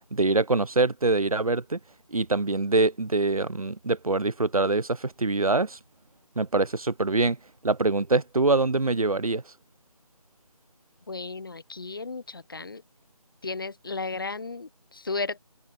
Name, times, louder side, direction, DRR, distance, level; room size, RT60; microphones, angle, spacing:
voice 1, 0.1-1.8 2.1-5.8 6.4-7.4 7.6-9.4, right 3 dB, 75° right, 0.9 m, -24 dB
voice 2, 11.1-12.8 13.4-15.4, left 3 dB, 35° left, 0.9 m, -34 dB
figure-of-eight pair, 160°, 19 cm